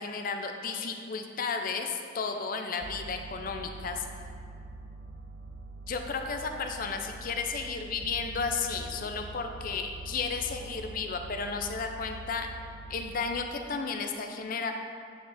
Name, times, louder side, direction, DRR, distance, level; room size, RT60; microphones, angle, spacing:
voice 1, 0.0-4.1 5.9-12.5 12.9-14.7, left 5 dB, 50° left, 5 dB, 0.5 m, -33 dB
sound 1, 2.8-13.2, right 3 dB, 65° right, 0.5 m, -44 dB
8.5 x 4.3 x 3.4 m, 2.2 s
head